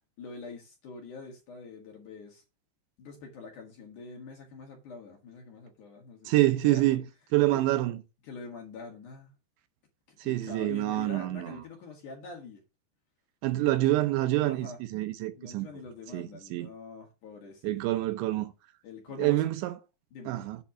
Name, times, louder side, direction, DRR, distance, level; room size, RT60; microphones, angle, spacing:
voice 1, 0.2-2.4 3.0-7.0 7.5-7.6 8.2-9.3 10.2-12.6 14.4-14.8 15.3-18.0 18.8-19.4 20.1-20.5, left 4 dB, 60° left, 2.3 m, -45 dB
voice 2, 6.3-7.0 7.3-8.0 10.2-11.6 13.4-15.7 16.1-16.7 17.6-18.5 19.2-19.7 20.3-20.6, right 17 dB, 85° right, 3.1 m, -27 dB
8.4 x 4.2 x 7.0 m
omnidirectional pair, 5.2 m